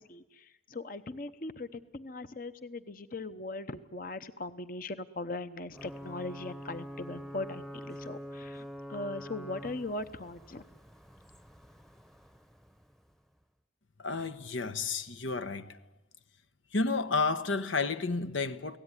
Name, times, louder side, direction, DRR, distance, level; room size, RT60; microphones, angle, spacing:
voice 1, 0.0-10.6, left 2 dB, 45° left, 0.9 m, -40 dB
Ocean / Boat Water vehicle / Alarm, 5.7-13.3, equal, ahead, 0.9 m, -46 dB
voice 2, 14.0-15.8 16.7-18.8, left 4 dB, 85° left, 1.2 m, -31 dB
30.0 x 18.0 x 9.9 m
head